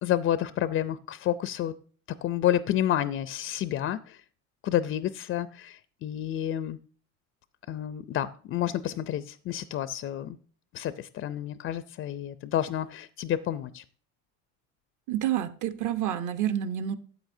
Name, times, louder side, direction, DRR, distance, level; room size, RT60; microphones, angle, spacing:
voice 1, 0.0-1.7 2.2-4.2 4.6-6.8 7.7-10.4 10.7-13.8, left 11 dB, 35° left, 14 dB, 0.4 m, -29 dB
voice 2, 15.1-17.0, right 11 dB, 50° right, 10 dB, 1.0 m, -28 dB
13.0 x 8.3 x 2.7 m, 0.44 s
supercardioid pair, 120°, 39 cm